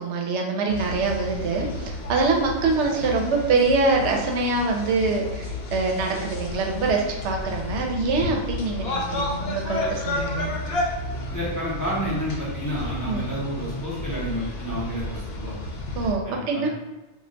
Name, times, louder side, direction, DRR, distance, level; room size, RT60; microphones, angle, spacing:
voice 1, 0.0-10.5 13.1-13.2 15.9-16.7, right 3 dB, 85° right, 1 dB, 0.9 m, -24 dB
sound 1, 0.7-16.1, left 2 dB, 70° left, 0.8 m, -32 dB
voice 2, 11.3-15.6 16.2-16.6, equal, 20° left, -8 dB, 0.6 m, -30 dB
2.3 x 2.2 x 3.7 m, 1.1 s
omnidirectional pair, 1.2 m